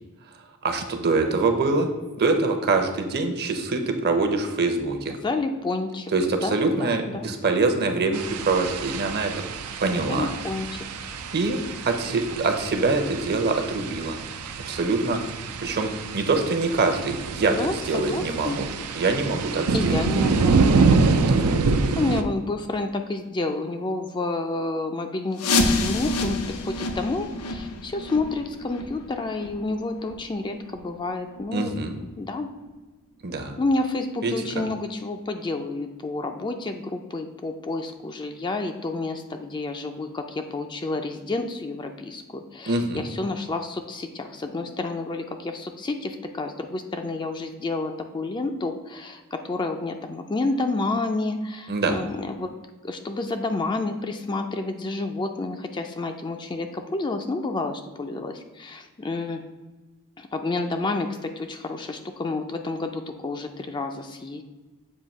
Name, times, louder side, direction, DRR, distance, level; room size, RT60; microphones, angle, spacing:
voice 1, 0.6-1.9 2.2-5.2 6.1-9.3 9.8-10.3 11.3-11.6 11.9-14.2 14.7-15.2 15.6-18.7 19.0-20.0 21.3-22.0 31.5-32.0 33.2-33.6 34.2-34.3 42.7-43.1 51.7-51.9, right 3 dB, 45° right, 6 dB, 0.7 m, -24 dB
voice 2, 5.2-6.1 6.4-7.3 9.9-10.8 17.5-18.6 19.7-20.6 21.9-31.8 32.2-32.5 33.6-52.5 52.8-59.4 60.2-64.4, left 2 dB, 20° left, 5 dB, 0.4 m, -29 dB
sound 1, 8.1-22.2, right 4 dB, 85° right, 0.5 m, -26 dB
sound 2, 25.4-30.9 31.3-31.4 31.9-32.0 32.7-32.8 33.3-33.4, left 2 dB, 85° left, 0.6 m, -28 dB
7.3 x 2.7 x 5.3 m, 1.2 s
head